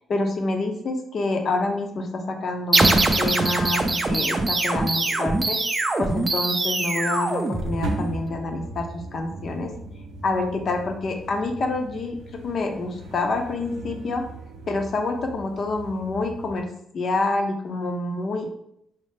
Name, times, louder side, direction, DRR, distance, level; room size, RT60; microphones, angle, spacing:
voice 1, 0.1-5.7 6.0-9.7 10.2-14.2 14.7-16.7 16.9-18.5, left 2 dB, 50° left, 4 dB, 0.6 m, -27 dB
sound 1, 2.7-8.2, right 2 dB, 25° right, 0.4 m, -23 dB
sound 2, 7.8-16.6, right 2 dB, 90° right, 0.5 m, -38 dB
4.3 x 2.0 x 3.2 m, 0.74 s
cardioid pair, 90°, 0 cm